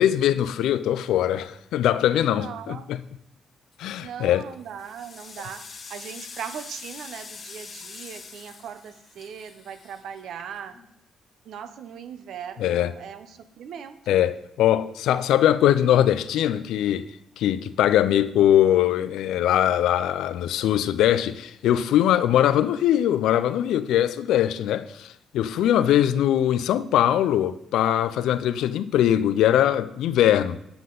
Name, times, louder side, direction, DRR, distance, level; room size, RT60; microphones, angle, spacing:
voice 1, 0.0-3.0 3.8-4.4 12.6-12.9 14.1-17.1 17.4-30.6, left 11 dB, 85° left, 0.4 m, -21 dB
voice 2, 2.2-2.9 4.0-5.6 5.9-10.7 11.4-14.3 25.7-26.2, right 8 dB, 75° right, 0.7 m, -39 dB
sound 1, 3.7-4.1 4.6-10.9, left 4 dB, 45° left, 1.3 m, -44 dB
8.0 x 7.5 x 3.8 m
cardioid pair, 90°, 0 cm